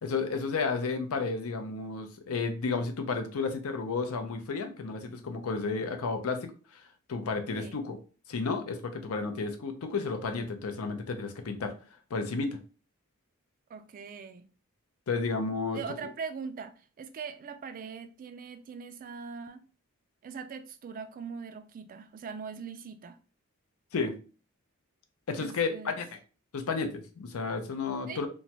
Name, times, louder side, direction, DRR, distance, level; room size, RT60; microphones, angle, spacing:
voice 1, 0.0-6.8 7.1-8.0 8.3-11.7 12.1-12.6 15.1-15.8 23.9-24.2 25.3-26.1 26.5-28.3, left 4 dB, 75° left, 6 dB, 0.5 m, -32 dB
voice 2, 13.7-14.5 15.7-19.6 20.2-23.2 25.4-26.0 28.1-28.2, right 6 dB, 40° right, 10 dB, 0.3 m, -41 dB
3.0 x 2.2 x 2.8 m, 0.37 s
head